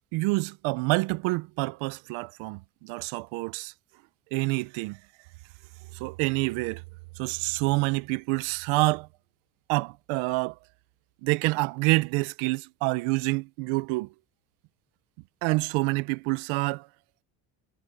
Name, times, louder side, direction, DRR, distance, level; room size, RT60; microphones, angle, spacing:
voice 1, 0.1-3.7 4.3-5.0 5.9-6.8 7.2-9.1 9.7-10.6 11.2-14.1 15.4-16.9, right 24 dB, 75° right, 1.2 m, -27 dB
supercardioid pair, 70°, 48 cm